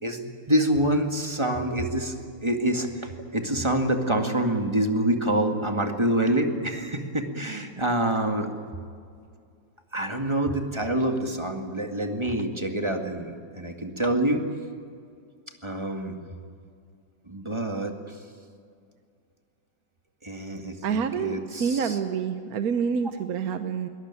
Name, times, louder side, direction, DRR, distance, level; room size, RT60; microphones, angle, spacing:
voice 1, 0.0-2.1 2.4-8.5 9.9-14.4 15.6-16.2 17.3-18.1 20.2-22.0, right 1 dB, 15° right, 4 dB, 1.9 m, -26 dB
voice 2, 20.8-23.9, right 6 dB, 60° right, 9 dB, 1.2 m, -27 dB
21.5 x 20.5 x 9.8 m, 2.3 s
omnidirectional pair, 2.1 m